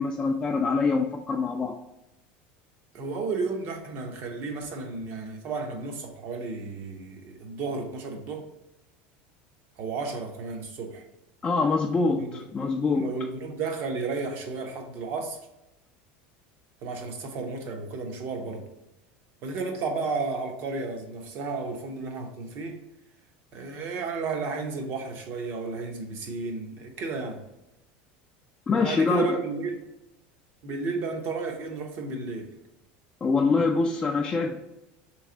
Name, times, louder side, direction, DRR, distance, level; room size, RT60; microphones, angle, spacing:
voice 1, 0.0-1.8 11.4-13.1 28.7-29.4 33.2-34.6, left 4 dB, 15° left, 0.3 m, -24 dB
voice 2, 2.9-8.5 9.8-11.0 12.2-12.4 13.0-15.4 16.8-18.7 19.4-22.8 23.5-27.4 28.7-29.8 30.6-32.5, right 4 dB, 45° right, 0.8 m, -33 dB
3.4 x 3.1 x 3.7 m
supercardioid pair, 150°, 5 cm